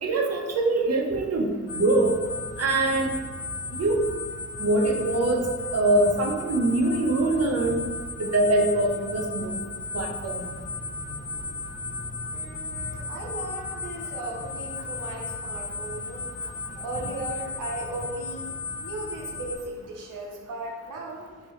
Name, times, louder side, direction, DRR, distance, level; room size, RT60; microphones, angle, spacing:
voice 1, 0.0-2.2 2.6-3.1 3.7-4.0 4.6-5.4 5.7-7.8 8.2-9.6 9.9-10.5, right 2 dB, 50° right, 2 dB, 0.7 m, -23 dB
sound 1, 1.7-19.6, left 3 dB, 35° left, 0.7 m, -35 dB
voice 2, 12.3-16.2 16.8-18.5 18.8-21.3, right 1 dB, 85° right, -1 dB, 0.6 m, -37 dB
3.7 x 2.9 x 4.3 m, 1.5 s
supercardioid pair, 40°, 31 cm